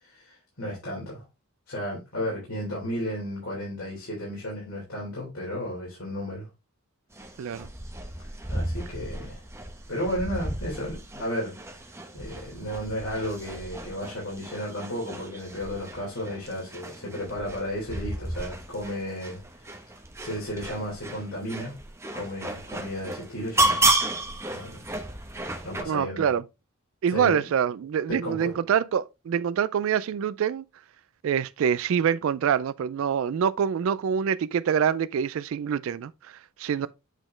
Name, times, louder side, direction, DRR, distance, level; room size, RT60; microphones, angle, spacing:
voice 1, 0.0-1.2 1.7-6.5 8.5-9.4 9.9-11.5 11.8-19.8 20.2-21.8 22.1-23.8 24.5-24.8 25.6-26.3 27.1-27.3 28.1-28.5, equal, 75° left, 3.3 m, -33 dB
sound 1, 7.1-25.8, right 2 dB, 15° right, 0.9 m, -32 dB
voice 2, 25.9-26.4 27.0-30.6 31.2-36.9, right 8 dB, 65° right, 0.3 m, -25 dB
8.1 x 4.3 x 3.2 m
head